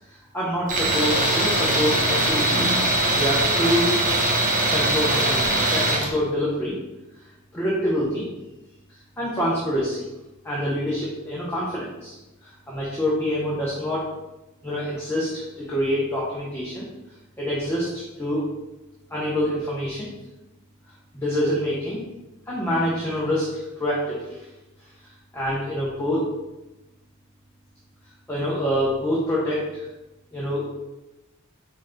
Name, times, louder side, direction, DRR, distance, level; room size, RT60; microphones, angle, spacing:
voice 1, 0.1-2.7 3.1-3.9 4.7-6.8 7.5-8.3 9.2-10.1 10.4-14.1 14.6-16.9 17.4-18.5 19.1-20.1 21.1-22.0 22.5-24.5 25.0-26.3 28.3-29.9 30.3-30.7, equal, 10° left, -7 dB, 0.7 m, -26 dB
Tools, 0.7-6.1, right 1 dB, 40° right, 0.7 m, -21 dB
4.6 x 3.7 x 2.2 m, 1.0 s
head